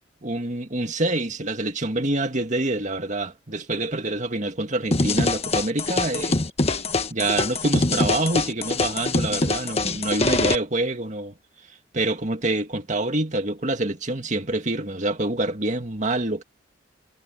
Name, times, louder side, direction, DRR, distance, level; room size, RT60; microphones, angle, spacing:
voice 1, 0.2-6.4 7.1-11.3 11.9-16.4, right 2 dB, 40° right, 2.1 m, -26 dB
sound 1, 4.9-10.5, left 2 dB, 35° left, 1.4 m, -24 dB
head